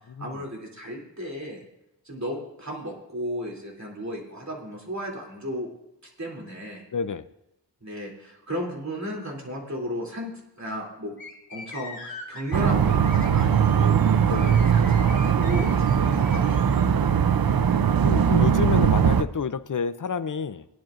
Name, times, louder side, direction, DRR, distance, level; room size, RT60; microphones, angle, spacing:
voice 1, 0.2-1.6 2.0-5.7 6.2-6.8 7.8-10.3 10.6-11.1 11.5-17.1, equal, 40° right, -2 dB, 2.9 m, -35 dB
voice 2, 6.9-7.2 14.3-14.5 17.6-20.7, left 6 dB, 45° left, 14 dB, 0.5 m, -29 dB
sound 1, 11.2-16.8, left 3 dB, 30° left, 4.3 m, -43 dB
sound 2, 12.5-19.2, right 7 dB, 55° right, 0.5 m, -20 dB
19.0 x 10.5 x 2.5 m, 0.88 s
wide cardioid pair, 60°, 43 cm